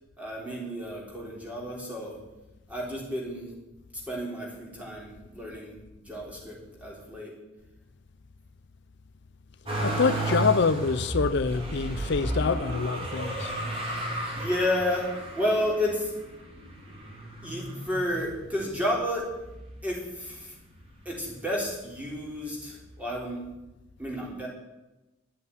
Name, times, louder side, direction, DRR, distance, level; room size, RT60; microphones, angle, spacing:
voice 1, 0.2-2.2 2.7-3.5 3.9-5.8 6.0-7.3 14.3-16.1 17.4-19.3 19.8-20.6 21.1-23.4 24.0-24.5, left 1 dB, 5° right, 3.8 m, -31 dB
Motor vehicle (road), 9.6-18.8 19.4-20.2 20.5-21.6 22.6-22.7, right 1 dB, 30° right, 3.3 m, -33 dB
voice 2, 9.8-13.5, left 5 dB, 60° left, 0.6 m, -26 dB
11.5 x 8.1 x 9.6 m
head